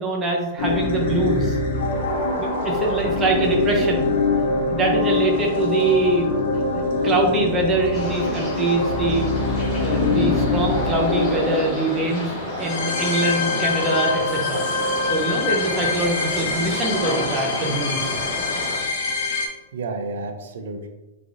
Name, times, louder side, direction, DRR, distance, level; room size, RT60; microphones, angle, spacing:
voice 1, 0.0-1.6 2.4-4.1 4.7-6.4 6.7-9.3 9.7-12.3 12.6-14.6 15.1-18.1, right 2 dB, 15° right, 0 dB, 0.6 m, -23 dB
sound 1, 0.6-19.5, left 3 dB, 70° left, 0.9 m, -24 dB
voice 2, 1.4-2.6 19.7-20.9, right 3 dB, 70° right, 6 dB, 0.5 m, -34 dB
sound 2, 7.9-18.8, left 1 dB, 15° left, 1.4 m, -30 dB
3.6 x 3.3 x 2.6 m, 1.1 s
supercardioid pair, 165°, 0 cm